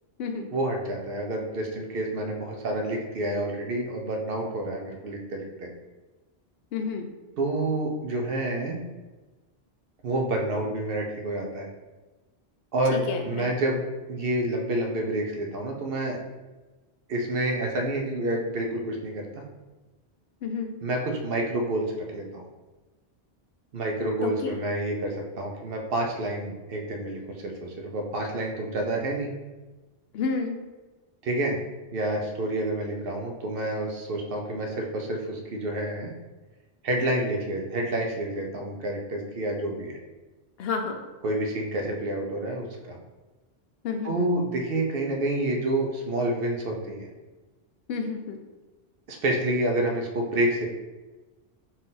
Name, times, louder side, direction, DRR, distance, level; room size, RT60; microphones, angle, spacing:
voice 1, 0.5-5.7 7.4-8.8 10.0-11.7 12.7-13.8 14.1-16.2 17.1-19.2 20.8-21.8 22.1-22.5 23.7-29.3 31.2-31.6 31.9-36.1 36.8-40.0 41.2-43.0 44.0-47.1 49.1-50.7, right 1 dB, 65° right, 1 dB, 0.8 m, -28 dB
voice 2, 6.7-7.1 13.1-13.5 20.4-20.7 24.2-24.6 30.1-30.6 40.6-41.0 43.8-44.3 47.9-48.4, left 5 dB, 70° left, 4 dB, 0.8 m, -30 dB
4.1 x 2.5 x 3.8 m, 1.2 s
omnidirectional pair, 1.1 m